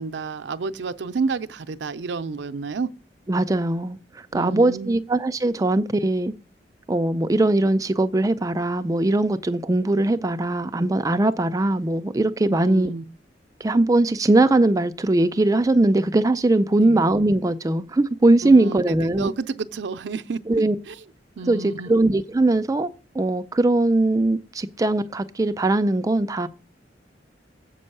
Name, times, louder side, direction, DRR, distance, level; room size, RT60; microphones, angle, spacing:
voice 1, 0.0-2.9 4.3-4.9 12.5-13.0 16.8-17.0 18.4-21.0 21.4-21.9, right 4 dB, 70° right, 0.5 m, -30 dB
voice 2, 3.3-6.3 6.9-12.9 13.6-19.3 20.5-20.8 21.5-22.9 23.1-26.5, right 2 dB, 20° right, 0.4 m, -20 dB
7.7 x 5.4 x 6.5 m
head